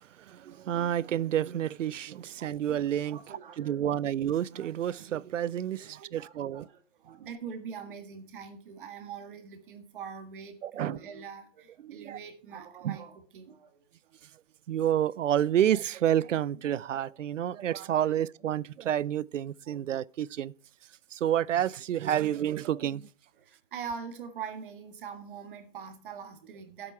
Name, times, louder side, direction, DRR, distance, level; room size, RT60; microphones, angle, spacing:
voice 1, 0.2-6.7 7.1-7.2 10.6-11.0 11.8-12.2 12.8-13.0 14.7-20.5 21.1-23.1, right 10 dB, 80° right, 0.6 m, -29 dB
voice 2, 2.1-2.6 3.0-3.9 5.7-13.9 23.4-26.9, right 6 dB, 45° right, 1.7 m, -43 dB
11.0 x 7.9 x 4.5 m
hypercardioid pair, 150°, 37 cm